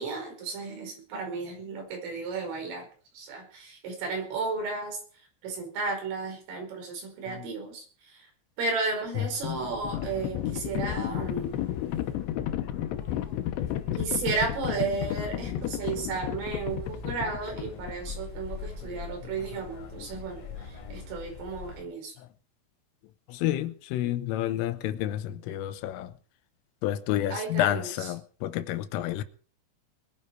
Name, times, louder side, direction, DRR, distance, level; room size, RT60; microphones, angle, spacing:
voice 1, 0.0-2.9 3.1-5.0 5.4-8.3 8.6-11.7 13.9-22.1 27.3-28.1, right 4 dB, 80° right, 7.7 m, -33 dB
Livestock farm animals working animals, 9.0-18.1, left 12 dB, 75° left, 2.8 m, -33 dB
voice 2, 9.2-9.6 10.2-10.3 12.6-13.7 15.8-15.9 18.8-19.0 20.0-20.1 20.8-21.0 22.2-22.3 23.3-26.1 26.8-29.2, left 13 dB, 90° left, 3.5 m, -31 dB
sound 1, 9.4-21.8, left 4 dB, 10° left, 5.2 m, -43 dB
22.0 x 10.5 x 4.7 m
omnidirectional pair, 5.8 m